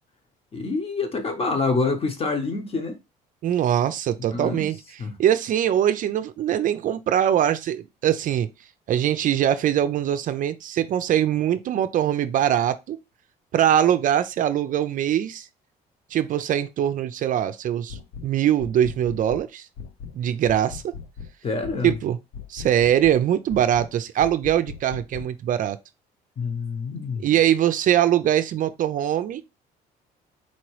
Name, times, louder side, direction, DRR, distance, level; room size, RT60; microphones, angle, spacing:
voice 1, 0.5-3.0 4.2-4.7 5.0-5.2 21.4-21.9 26.4-27.3, left 4 dB, 35° left, 1.0 m, -27 dB
voice 2, 3.4-4.8 5.2-8.5 8.9-13.0 13.5-15.5 16.1-18.0 18.2-19.7 20.1-20.9 21.8-22.2 22.5-25.8 27.2-29.4, right 10 dB, 50° right, 0.4 m, -22 dB
sound 1, 17.9-18.3 18.6-19.5 19.8-20.2 20.5-21.3 21.6-22.0 22.3-23.2 23.5-23.9 24.2-25.3, left 6 dB, 80° left, 0.6 m, -38 dB
4.2 x 2.9 x 3.1 m
cardioid pair, 110°, 17 cm